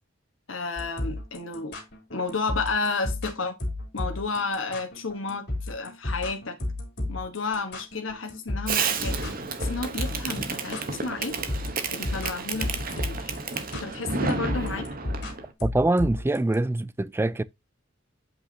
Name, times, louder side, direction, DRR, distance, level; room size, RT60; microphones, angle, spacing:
voice 1, 0.5-1.8 2.1-3.5 3.9-6.6 7.1-9.1 9.6-11.4 11.9-13.3 13.7-14.9, left 3 dB, 80° left, 1.3 m, -31 dB
sound 1, 0.8-16.6, left 1 dB, 60° left, 3.2 m, -33 dB
Fireworks, 8.7-15.5, right 4 dB, 45° right, 1.0 m, -31 dB
voice 2, 15.6-17.4, right 2 dB, 10° right, 0.3 m, -24 dB
7.9 x 5.6 x 2.8 m
head